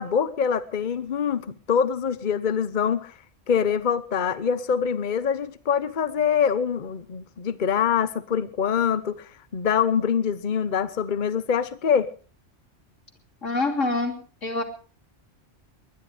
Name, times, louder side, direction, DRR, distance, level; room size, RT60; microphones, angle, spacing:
voice 1, 0.0-3.1 3.5-12.1, left 7 dB, 45° left, 14 dB, 1.0 m, -24 dB
voice 2, 13.4-14.2 14.4-14.6, left 2 dB, 90° left, 6 dB, 3.4 m, -25 dB
21.5 x 20.0 x 3.4 m, 0.37 s
omnidirectional pair, 1.2 m